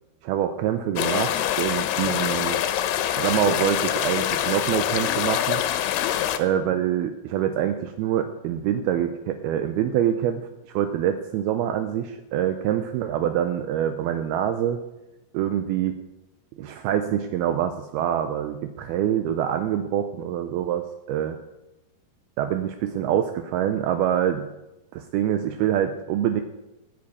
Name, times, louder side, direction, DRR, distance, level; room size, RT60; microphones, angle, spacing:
voice 1, 0.2-2.6 3.2-5.6 6.4-14.8 15.3-15.9 16.6-21.4 22.4-24.5 24.9-26.4, right 10 dB, 80° right, 8 dB, 2.5 m, -25 dB
sound 1, 1.0-6.4, left 11 dB, 90° left, 2.9 m, -25 dB
14.5 x 7.8 x 8.4 m, 0.98 s
omnidirectional pair, 4.7 m